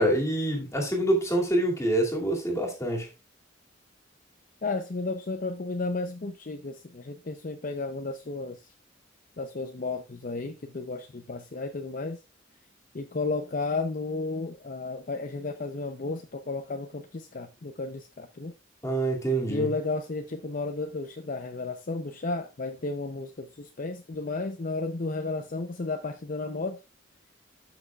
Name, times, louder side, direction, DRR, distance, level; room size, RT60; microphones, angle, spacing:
voice 1, 0.0-3.1 18.8-19.7, right 1 dB, 15° left, 2.4 m, -26 dB
voice 2, 4.6-8.6 9.4-12.2 12.9-18.5 19.5-26.8, left 3 dB, 45° left, 0.6 m, -33 dB
12.5 x 6.1 x 2.3 m
head